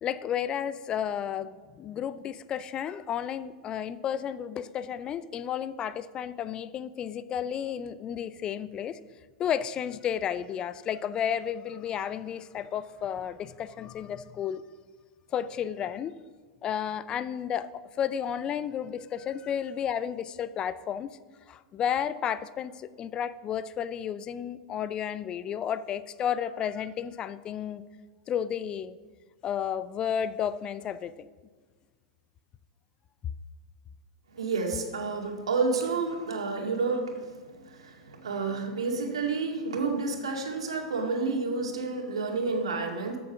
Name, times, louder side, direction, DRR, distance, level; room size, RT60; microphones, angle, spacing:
voice 1, 0.0-9.0 9.4-14.6 15.3-16.1 16.6-21.1 21.5-27.8 28.3-29.0 29.4-31.3, left 9 dB, 25° left, 16 dB, 0.4 m, -32 dB
voice 2, 34.3-43.2, right 4 dB, 70° right, 2 dB, 2.2 m, -30 dB
13.5 x 7.1 x 6.0 m, 1.5 s
figure-of-eight pair, 95°, 3 cm